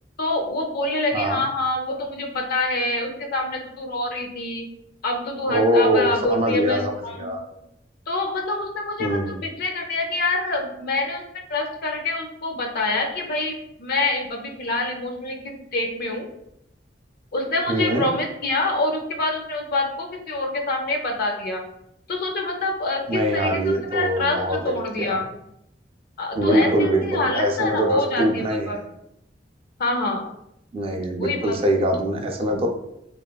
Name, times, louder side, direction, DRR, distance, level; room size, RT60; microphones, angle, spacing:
voice 1, 0.2-4.7 5.0-7.5 8.1-11.2 11.5-16.3 17.3-21.6 22.1-25.3 26.2-28.8 29.8-30.2 31.2-31.7, left 2 dB, 55° left, 2 dB, 0.4 m, -26 dB
voice 2, 1.1-1.4 5.5-7.4 9.0-9.4 17.7-18.1 23.1-25.2 26.4-28.8 30.7-32.7, equal, 30° right, 3 dB, 0.3 m, -23 dB
2.9 x 2.2 x 2.2 m, 0.82 s
head